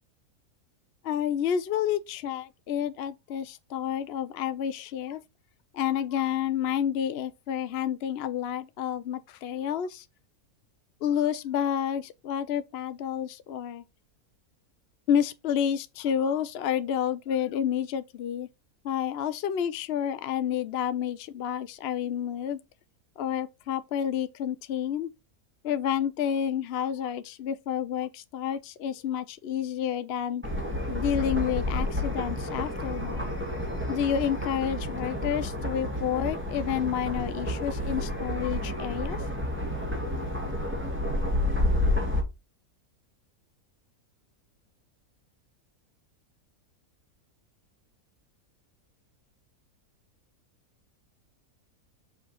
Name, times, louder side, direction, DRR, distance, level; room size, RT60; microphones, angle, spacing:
voice 1, 1.0-5.2 5.7-10.1 11.0-13.8 15.1-18.5 18.8-22.6 23.2-25.1 25.6-30.4 30.9-33.3 33.9-39.2, left 9 dB, 60° left, 0.6 m, -29 dB
sound 1, 30.4-42.2, left 1 dB, 10° right, 2.0 m, -30 dB
6.2 x 5.0 x 4.3 m
omnidirectional pair, 1.6 m